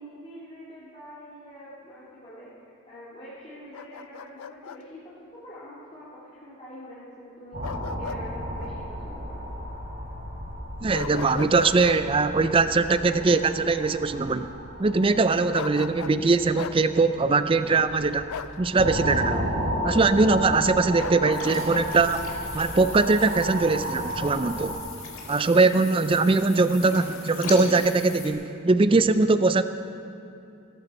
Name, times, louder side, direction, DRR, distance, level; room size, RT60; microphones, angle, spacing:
voice 1, 0.0-7.6 8.0-9.5 27.0-27.2, equal, 25° left, -10 dB, 2.4 m, -45 dB
Bark, 3.7-4.8 7.6-8.2 8.6-8.7 10.9-12.0 15.5-16.2 16.6-16.8 18.3-18.6 21.0-21.9, left 7 dB, 85° left, 0.4 m, -37 dB
sound 1, 7.5-24.8, equal, 45° right, 3.5 m, -34 dB
voice 2, 10.8-14.5 14.8-19.5 19.8-22.3 22.5-24.8 25.3-29.7, right 3 dB, 25° right, 11 dB, 0.4 m, -21 dB
sound 2, 21.3-28.3, left 4 dB, 70° left, 2.2 m, -40 dB
17.0 x 14.0 x 4.2 m, 2.6 s
head